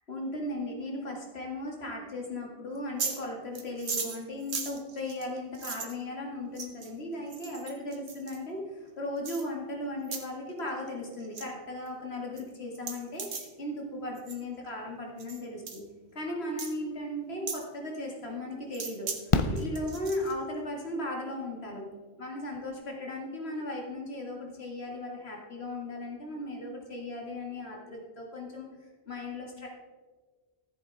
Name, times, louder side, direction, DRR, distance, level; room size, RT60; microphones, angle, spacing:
voice 1, 0.1-15.8 16.1-19.1 19.5-21.9 22.2-28.7 29.1-29.7, left 1 dB, 70° left, 0 dB, 2.2 m, -37 dB
sound 1, 2.8-3.2 3.5-5.9 6.6-6.9 7.3-8.4 9.3-9.4 10.0-10.2 10.6-10.9 11.1-11.4 11.9-12.0 12.4-12.5 12.7-13.5 14.2-14.4 15.2-15.4 15.7-15.8 16.6-16.7 17.5-17.6 18.7-19.2 19.6-20.3, right 5 dB, 80° right, 1.5 m, -37 dB
Fireworks, 17.6-17.7 19.3-20.6 22.4-22.5 22.7-22.8, left 4 dB, 35° left, 0.6 m, -29 dB
14.0 x 7.7 x 4.0 m, 1.4 s
omnidirectional pair, 1.1 m